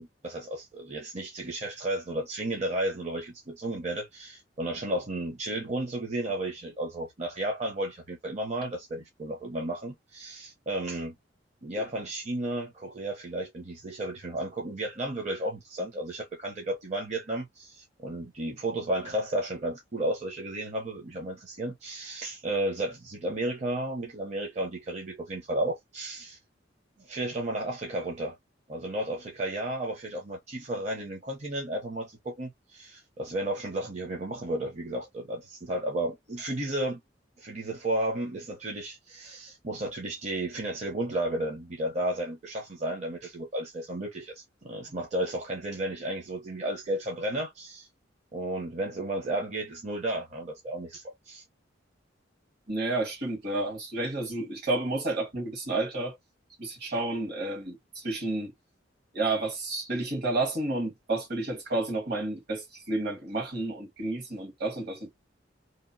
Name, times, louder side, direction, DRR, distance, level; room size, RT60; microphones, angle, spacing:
voice 1, 0.0-11.1 11.6-26.4 27.0-28.4 28.7-37.0 37.4-47.9 48.3-51.4, right 1 dB, 40° right, 0.7 m, -33 dB
voice 2, 52.7-56.2 56.6-58.5 59.1-65.1, right 2 dB, 60° right, 1.4 m, -31 dB
2.8 x 2.2 x 2.6 m
head